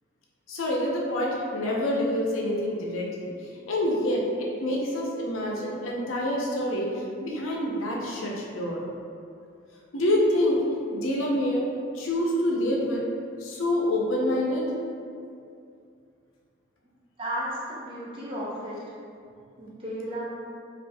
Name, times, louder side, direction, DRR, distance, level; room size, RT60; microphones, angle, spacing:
voice 1, 0.5-3.3 3.7-6.9 7.2-8.8 9.9-10.6 10.9-11.7 11.9-13.0 13.4-14.7, left 1 dB, 75° left, -2 dB, 0.6 m, -26 dB
voice 2, 17.2-18.8 19.6-20.2, right 1 dB, 25° right, -7 dB, 0.5 m, -33 dB
3.4 x 2.4 x 2.6 m, 2.4 s
head